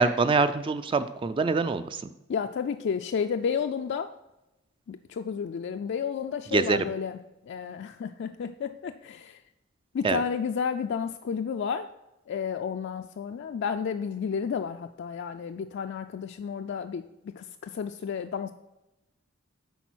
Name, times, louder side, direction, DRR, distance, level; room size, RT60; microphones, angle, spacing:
voice 1, 0.0-2.1 6.5-6.8 10.0-10.2, right 4 dB, 25° right, 11 dB, 0.3 m, -24 dB
voice 2, 2.3-4.1 4.9-7.2 7.5-9.4 9.9-11.9 12.3-18.5, left 6 dB, 55° left, 7 dB, 0.3 m, -31 dB
8.2 x 4.6 x 6.1 m, 0.96 s
head